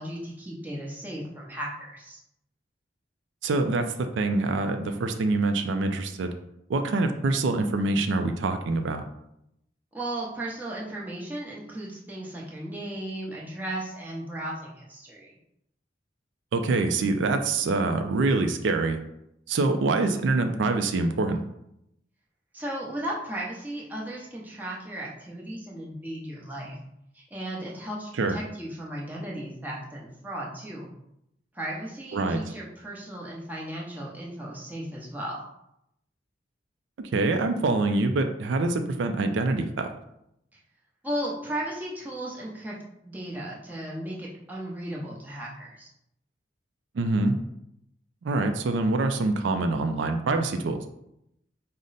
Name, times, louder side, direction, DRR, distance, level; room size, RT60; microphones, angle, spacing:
voice 1, 0.0-2.2 9.9-15.3 22.5-26.8 27.1-30.9 31.5-35.5 41.0-42.8 43.0-45.9, right 1 dB, 10° right, -4 dB, 0.8 m, -35 dB
voice 2, 3.4-6.3 6.7-9.0 16.5-19.0 19.5-21.4 28.2-28.4 32.1-32.4 37.1-39.9 47.0-47.3 48.2-50.8, right 3 dB, 75° right, 7 dB, 0.4 m, -25 dB
5.0 x 2.1 x 4.0 m, 0.80 s
head